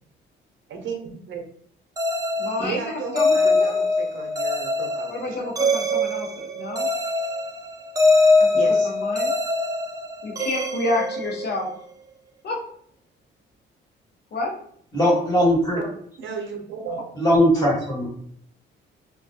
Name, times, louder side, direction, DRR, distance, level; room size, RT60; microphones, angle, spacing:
voice 1, 0.7-1.4 2.6-5.4 8.4-8.9 15.8-15.9 16.2-17.0, right 5 dB, 75° right, 2 dB, 0.6 m, -34 dB
sound 1, 2.0-11.8, left 2 dB, 15° right, 0.4 m, -23 dB
voice 2, 2.4-3.8 5.1-6.9 8.4-8.5 8.8-9.3 10.2-11.7 12.4-12.6 14.3-14.5, left 2 dB, 55° left, 0 dB, 0.8 m, -29 dB
voice 3, 14.9-15.8 17.2-18.1, equal, 20° left, -5 dB, 1.2 m, -19 dB
2.2 x 2.2 x 2.6 m, 0.65 s
cardioid pair, 90°, 20 cm